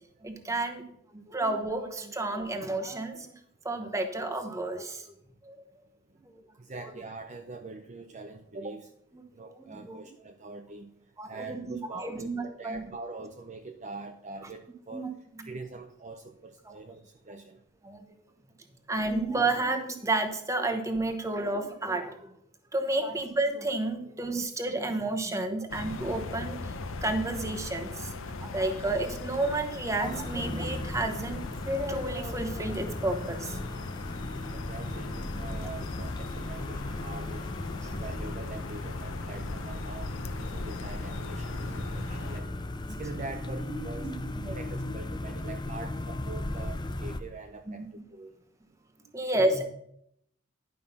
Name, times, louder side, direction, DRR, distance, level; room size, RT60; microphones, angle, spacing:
voice 1, 0.2-0.8 1.1-3.3 3.6-5.1 5.4-5.6 6.3-6.4 9.4-10.0 11.2-12.8 14.9-15.1 17.8-18.1 18.9-22.3 22.7-26.7 27.0-28.1 28.4-33.6 37.8-37.9 42.1-42.3 42.9-43.0 44.0-44.5 47.7-47.8 49.1-49.7, right 2 dB, 15° right, 5 dB, 1.0 m, -31 dB
voice 2, 6.6-8.9 9.3-10.9 11.2-15.1 15.4-17.6 25.5-25.7 34.5-37.5 37.9-40.1 40.4-42.5 43.0-44.1 44.5-47.8 48.1-48.3, right 3 dB, 35° right, 5 dB, 0.6 m, -43 dB
sound 1, 25.7-42.4, left 3 dB, 65° left, 0.7 m, -39 dB
sound 2, 30.0-47.2, left 1 dB, 20° left, 0.5 m, -37 dB
11.0 x 5.4 x 5.6 m, 0.73 s
head